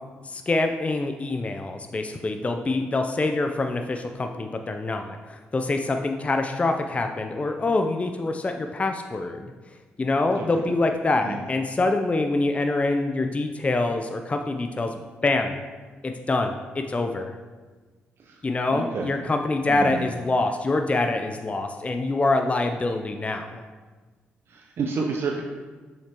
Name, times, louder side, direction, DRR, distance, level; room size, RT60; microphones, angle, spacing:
voice 1, 0.2-9.5 10.0-15.6 16.0-17.3 18.4-23.6, left 2 dB, 30° left, 5 dB, 0.5 m, -25 dB
voice 2, 18.7-19.1 19.7-20.0 24.5-25.4, right 4 dB, 55° right, 1 dB, 0.6 m, -29 dB
6.7 x 5.6 x 2.9 m, 1.4 s
hypercardioid pair, 50°, 5 cm